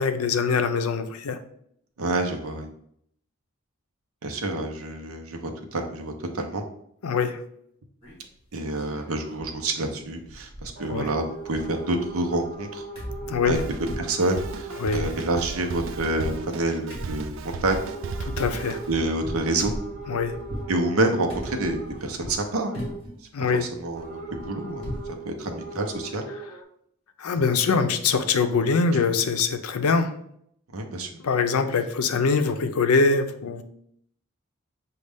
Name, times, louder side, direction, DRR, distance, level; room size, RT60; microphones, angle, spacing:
voice 1, 0.0-1.4 7.0-7.4 10.9-11.1 13.3-13.6 14.8-15.1 18.2-18.8 20.1-20.4 23.3-23.7 27.2-30.1 31.2-33.6, left 4 dB, 90° left, 8 dB, 0.5 m, -23 dB
voice 2, 2.0-2.7 4.2-6.6 8.5-12.9 13.4-13.6 14.0-17.8 18.9-19.7 20.7-22.9 23.6-24.9 25.2-26.3 30.7-31.1, right 2 dB, 80° right, 4 dB, 0.7 m, -28 dB
sound 1, 8.0-8.4 8.8-9.6 9.8-9.9 10.2-11.1 11.3-12.7 13.0-20.7 21.3-22.4 22.7-23.2 23.6-25.1 25.5-25.6 25.9-26.1, equal, 25° left, 1.6 m, -38 dB
sound 2, 10.8-15.8 16.1-16.5 17.7-23.1 23.9-26.6, right 3 dB, 40° right, 0.8 m, -39 dB
Drum kit, 13.5-18.9, right 3 dB, 60° right, 0.3 m, -36 dB
6.2 x 2.4 x 3.4 m, 0.69 s
head